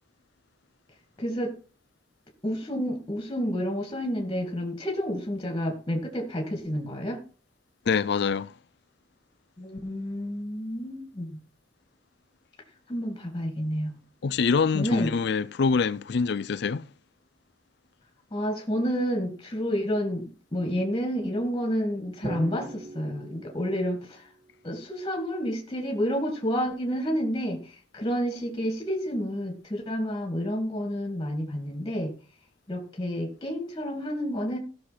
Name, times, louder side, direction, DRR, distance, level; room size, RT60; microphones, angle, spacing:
voice 1, 1.2-1.6 2.4-7.2 9.6-11.4 12.9-14.0 14.7-15.1 18.3-24.3 24.6-32.1 32.7-34.6, equal, 25° left, 2.2 m, -30 dB
voice 2, 7.9-8.5 14.2-16.9, left 5 dB, 60° left, 0.4 m, -25 dB
Drum, 22.2-24.4, right 1 dB, 35° right, 4.8 m, -39 dB
16.5 x 6.5 x 4.3 m
head